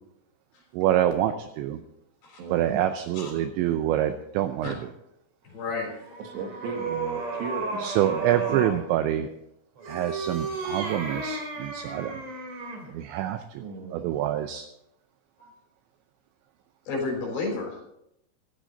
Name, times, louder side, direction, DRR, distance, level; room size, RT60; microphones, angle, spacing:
voice 1, 0.7-1.8 2.5-4.8 7.8-9.3 9.9-12.2 12.9-13.6 13.9-14.7, right 12 dB, 85° right, 9 dB, 2.6 m, -26 dB
voice 2, 2.4-2.8 6.2-9.0 13.6-14.2, right 4 dB, 70° right, 3 dB, 3.2 m, -37 dB
voice 3, 5.5-5.9 15.4-15.5 16.9-17.8, left 3 dB, 55° left, 0 dB, 5.6 m, -31 dB
sound 1, 5.8-8.8 9.8-12.9, right 3 dB, 40° right, 3.6 m, -33 dB
15.5 x 13.0 x 3.9 m, 0.81 s
omnidirectional pair, 5.9 m